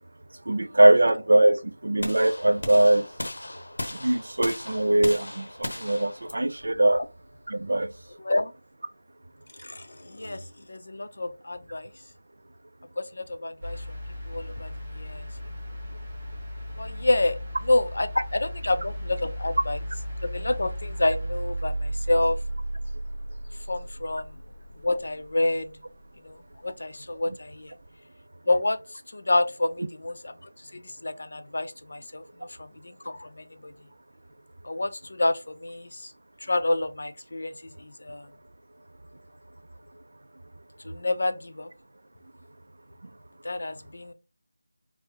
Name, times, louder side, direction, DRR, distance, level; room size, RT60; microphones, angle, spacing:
voice 1, 0.5-3.0 4.0-7.0 7.5-7.9, right 1 dB, 70° right, 0.4 m, -21 dB
sound 1, 2.0-8.1, left 1 dB, 80° left, 0.9 m, -37 dB
voice 2, 9.6-11.9 13.0-13.8 14.3-15.2 16.8-17.4 17.7-19.8 20.2-22.4 23.7-24.3 24.8-25.7 26.2-26.4 26.6-27.7 28.5-28.8 29.1-30.3 30.7-33.7 34.6-36.1 36.5-37.5 37.8-38.3 40.8-41.7 43.4-44.1, left 2 dB, 60° left, 0.5 m, -28 dB
sound 2, 13.6-25.9 27.2-27.3, right 1 dB, 20° right, 1.2 m, -35 dB
4.6 x 2.0 x 2.8 m
figure-of-eight pair, 175°, 0 cm